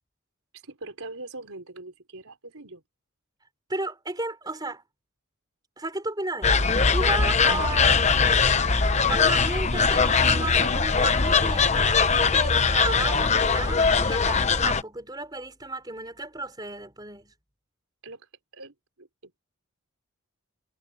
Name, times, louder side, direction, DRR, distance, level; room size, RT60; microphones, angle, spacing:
voice 1, 0.5-2.8 18.0-18.3 18.5-19.4, right 2 dB, 75° right, 3.8 m, -42 dB
voice 2, 3.7-4.8 5.8-8.1 9.1-17.3, right 2 dB, 20° right, 4.8 m, -33 dB
sound 1, 6.4-14.8, left 5 dB, 30° left, 1.0 m, -21 dB
head